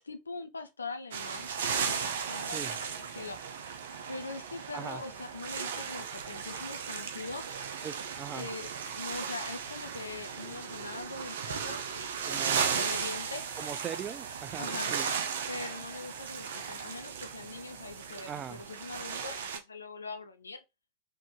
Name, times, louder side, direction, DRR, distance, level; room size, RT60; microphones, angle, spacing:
voice 1, 0.0-3.4 4.1-7.5 8.3-8.7 8.9-13.4 14.6-14.9 15.5-20.6, left 3 dB, 75° left, 0.6 m, -42 dB
sound 1, 1.1-19.6, right 7 dB, 60° right, 0.7 m, -36 dB
voice 2, 7.8-8.5 12.3-12.8 13.6-15.1 18.3-18.6, right 8 dB, 25° right, 0.4 m, -40 dB
3.8 x 3.2 x 3.8 m
figure-of-eight pair, 90°, 0 cm